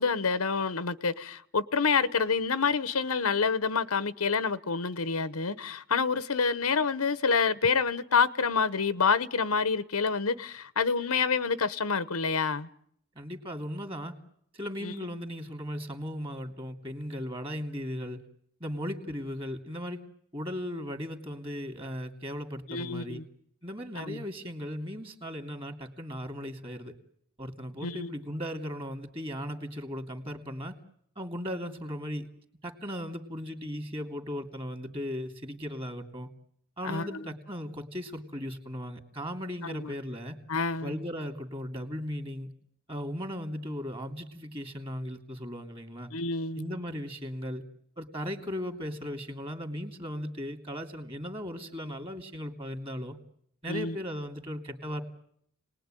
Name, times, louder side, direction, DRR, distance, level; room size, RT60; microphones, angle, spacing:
voice 1, 0.0-12.7 14.8-14.9 22.7-23.2 23.9-24.2 27.8-28.1 36.8-37.3 39.6-39.9 40.5-41.0 46.1-46.8 53.7-54.0, left 5 dB, 85° left, 1.0 m, -28 dB
voice 2, 13.1-14.1 14.5-18.2 18.6-20.0 20.3-23.2 23.6-26.9 27.4-30.8 31.2-32.3 32.6-36.3 36.8-40.4 40.8-42.5 42.9-46.1 46.6-47.6 48.0-53.2 53.6-55.0, equal, 25° right, 2.7 m, -37 dB
30.0 x 20.0 x 9.1 m
head